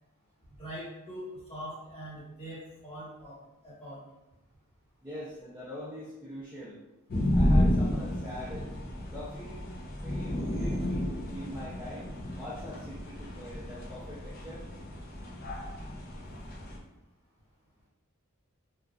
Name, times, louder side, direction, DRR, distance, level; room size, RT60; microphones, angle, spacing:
voice 1, 0.6-3.4 3.6-4.0, equal, 25° left, -9 dB, 1.5 m, -42 dB
voice 2, 5.0-6.8 7.3-8.7 9.1-9.6 10.0-14.6, left 1 dB, 10° right, -10 dB, 0.5 m, -43 dB
sound 1, 7.1-16.8, left 1 dB, 45° left, 0.5 m, -31 dB
2.9 x 2.4 x 2.4 m, 0.98 s
head